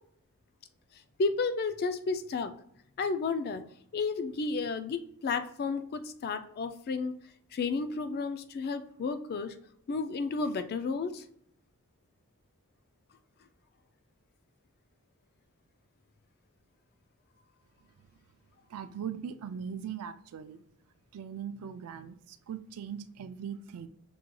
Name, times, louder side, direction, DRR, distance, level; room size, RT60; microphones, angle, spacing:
voice 1, 1.2-2.5 3.0-3.6 3.9-7.1 7.5-9.6 9.9-11.2, left 4 dB, 45° left, 10 dB, 0.3 m, -32 dB
voice 2, 18.7-20.6 21.1-23.9, right 8 dB, 75° right, 11 dB, 0.4 m, -40 dB
6.0 x 3.0 x 2.2 m, 0.70 s
head